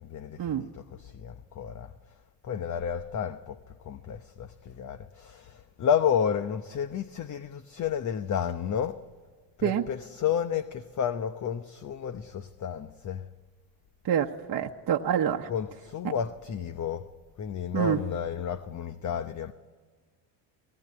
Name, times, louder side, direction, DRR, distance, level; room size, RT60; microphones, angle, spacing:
voice 1, 0.0-1.9 2.4-9.0 9.6-13.3 15.5-17.1 17.4-19.5, left 8 dB, 35° left, 1.0 m, -31 dB
voice 2, 14.0-15.5 17.7-18.0, right 9 dB, 45° right, 1.2 m, -26 dB
20.0 x 18.5 x 9.6 m
supercardioid pair, 90°, 49 cm